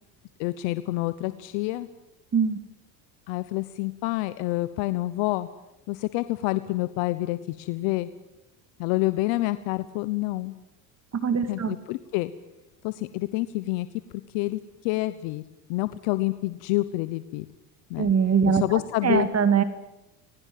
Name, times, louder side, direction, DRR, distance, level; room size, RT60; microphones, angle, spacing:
voice 1, 0.4-1.9 3.3-5.5 5.9-8.1 8.8-10.5 11.5-12.3 12.8-13.9 14.3-15.4 15.7-17.4 17.9-18.1 18.5-19.3, left 19 dB, 80° left, 13 dB, 1.1 m, -28 dB
voice 2, 11.1-11.8 18.0-19.6, right 6 dB, 35° right, 10 dB, 2.3 m, -22 dB
28.5 x 21.5 x 7.7 m, 0.96 s
supercardioid pair, 100°, 46 cm